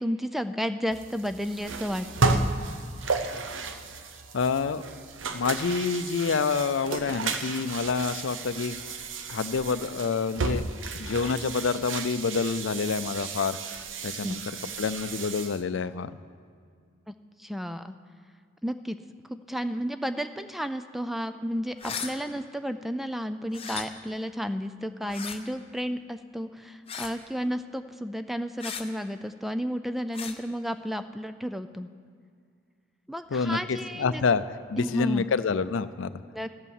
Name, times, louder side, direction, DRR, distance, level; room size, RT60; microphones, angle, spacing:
voice 1, 0.0-2.5 14.2-14.4 17.4-18.0 18.6-19.0 19.3-31.9 33.1-34.2 34.8-35.3 36.3-36.5, equal, ahead, 10 dB, 0.3 m, -32 dB
sound 1, 0.9-15.6, right 3 dB, 80° right, 0.8 m, -33 dB
voice 2, 4.3-4.8 5.3-8.8 9.3-10.7 10.9-13.6 14.0-14.4 14.8-16.1 33.3-36.1, left 5 dB, 85° left, 13 dB, 0.5 m, -27 dB
sound 2, 21.8-22.1 23.5-23.8 25.1-25.4 26.9-27.2 28.6-28.8 30.1-30.3, left 7 dB, 30° left, 0.8 m, -36 dB
13.0 x 8.4 x 7.2 m, 2.2 s
head